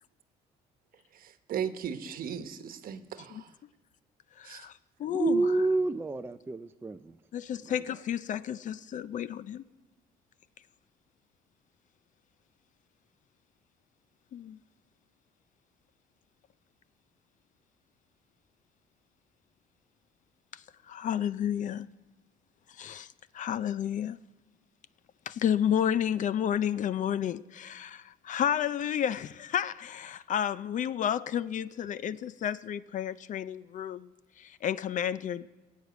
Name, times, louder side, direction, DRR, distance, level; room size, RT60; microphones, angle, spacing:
voice 1, 1.1-3.5 4.4-4.7, right 8 dB, 60° right, 1.1 m, -37 dB
voice 2, 4.4-4.7 5.0-5.6 7.3-9.6 14.3-14.6 20.9-21.9 22.8-23.1 23.3-24.2 25.3-34.1 34.4-35.5, left 9 dB, 50° left, 0.5 m, -31 dB
voice 3, 5.1-7.1, right 3 dB, 15° right, 0.4 m, -28 dB
16.0 x 8.4 x 8.0 m
cardioid pair, 110°, 17 cm